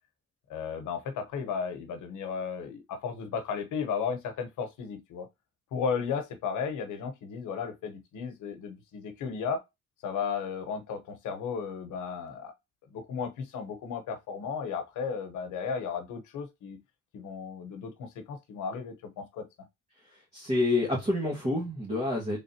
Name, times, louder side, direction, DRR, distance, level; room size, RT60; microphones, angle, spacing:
voice 1, 0.5-5.3 5.7-9.6 10.0-12.5 12.9-16.8 17.1-19.4, left 6 dB, 80° left, 1.0 m, -34 dB
voice 2, 20.0-22.4, left 2 dB, 20° right, 1.6 m, -28 dB
3.7 x 3.6 x 2.8 m
cardioid pair, 90°, 30 cm